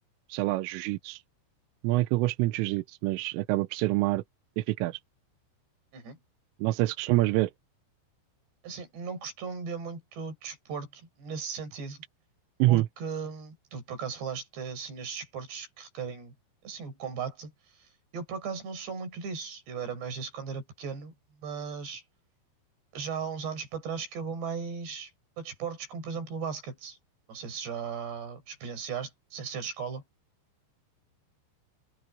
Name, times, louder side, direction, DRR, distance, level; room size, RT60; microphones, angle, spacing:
voice 1, 0.3-1.2 1.8-4.2 4.6-5.0 6.6-7.5 12.6-12.9, right 18 dB, 90° right, 3.4 m, -26 dB
voice 2, 8.6-12.0 12.7-16.3 16.6-17.5 18.1-21.1 21.4-22.0 22.9-25.1 25.4-27.0 27.3-30.0, right 6 dB, 55° right, 7.1 m, -37 dB
omnidirectional pair, 5.8 m